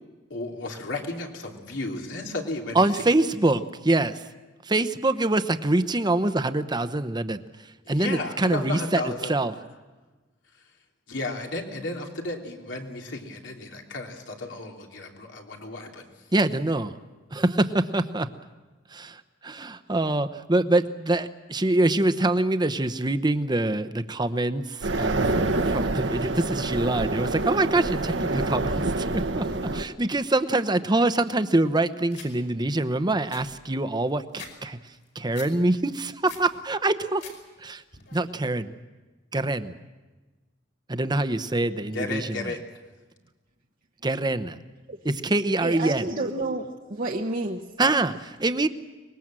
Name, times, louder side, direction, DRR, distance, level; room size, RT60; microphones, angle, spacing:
voice 1, 0.3-3.0 8.0-9.4 11.1-16.0 41.9-42.6, left 2 dB, 85° left, 1 dB, 3.1 m, -33 dB
voice 2, 2.7-4.2 4.6-7.4 7.9-9.5 16.3-17.0 17.3-18.3 18.9-29.5 29.7-34.8 35.1-37.3 37.6-37.8 38.1-38.7 39.3-39.7 40.9-42.5 44.0-44.6 45.0-46.1 47.8-48.7, right 2 dB, 25° right, 11 dB, 0.9 m, -25 dB
sound 1, 24.8-29.8, right 2 dB, 75° right, 1.3 m, -27 dB
sound 2, 32.1-32.3 32.8-32.9 33.1-34.5 34.9-35.5 35.9-36.5 36.9-37.4 37.7-38.2, left 6 dB, 70° left, 5.3 m, -44 dB
voice 3, 45.6-47.7, right 2 dB, 45° right, 1 dB, 1.1 m, -30 dB
24.5 x 21.0 x 7.6 m, 1.2 s
head